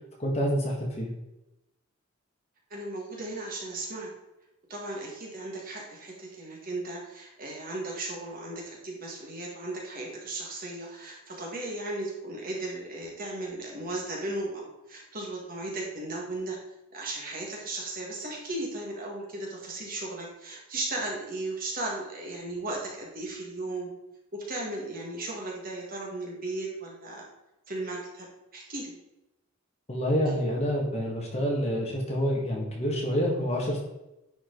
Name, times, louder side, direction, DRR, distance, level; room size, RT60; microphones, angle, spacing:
voice 1, 0.2-1.1 29.9-33.8, equal, 30° left, -2 dB, 1.9 m, -27 dB
voice 2, 2.7-4.1 4.7-16.6 16.9-23.9 24.3-27.3 27.7-28.9, right 2 dB, 45° right, -2 dB, 2.0 m, -36 dB
10.0 x 5.2 x 4.0 m, 0.93 s
head